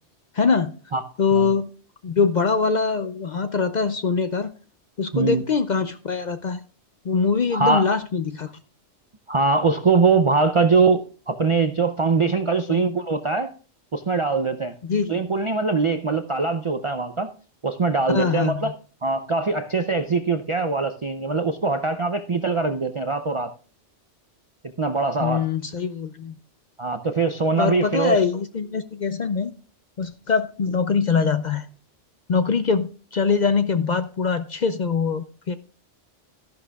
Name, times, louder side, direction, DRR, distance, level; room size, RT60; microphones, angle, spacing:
voice 1, 0.3-0.7 1.2-1.7 2.0-4.5 5.0-6.6 7.0-8.5 12.7-12.8 14.8-15.2 18.1-18.7 25.2-26.3 27.6-29.5 30.0-31.7 32.3-35.6, left 5 dB, 50° left, 10 dB, 0.6 m, -23 dB
voice 2, 7.5-7.9 9.3-13.5 13.9-14.7 15.1-17.3 17.6-18.7 19.0-23.5 24.8-25.5 26.8-28.2, right 4 dB, 45° right, 7 dB, 0.4 m, -22 dB
13.0 x 11.0 x 2.3 m, 0.37 s
omnidirectional pair, 1.2 m